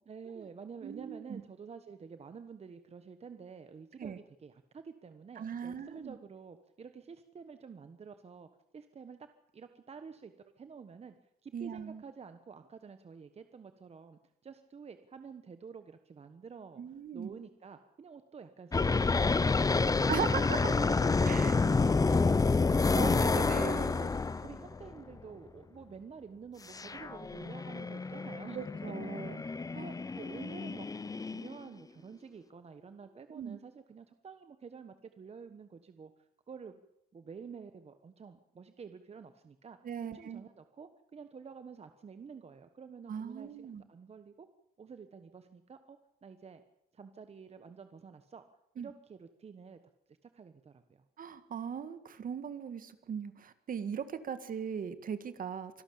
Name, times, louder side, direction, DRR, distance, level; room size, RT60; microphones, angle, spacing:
voice 1, 0.1-9.3 9.5-11.1 11.4-20.0 20.4-23.1 23.6-28.6 29.8-36.1 36.5-36.8 37.1-39.8 40.1-44.5 44.8-46.6 46.9-48.4 48.8-49.8 50.1-51.0, right 6 dB, 40° right, 9 dB, 1.3 m, -49 dB
voice 2, 0.8-1.4 4.0-4.2 5.4-6.2 11.5-12.0 16.8-17.3 20.1-20.8 21.2-21.5 22.9-23.9 28.5-29.3 29.7-29.9 33.3-33.6 39.8-40.4 43.1-43.8 48.8-48.9 51.2-55.8, right 7 dB, 60° right, 11 dB, 1.9 m, -39 dB
sound 1, 18.7-24.9 26.7-31.6, left 4 dB, 20° left, 0.8 m, -29 dB
25.0 x 12.5 x 8.7 m, 0.80 s
cardioid pair, 110°, 16 cm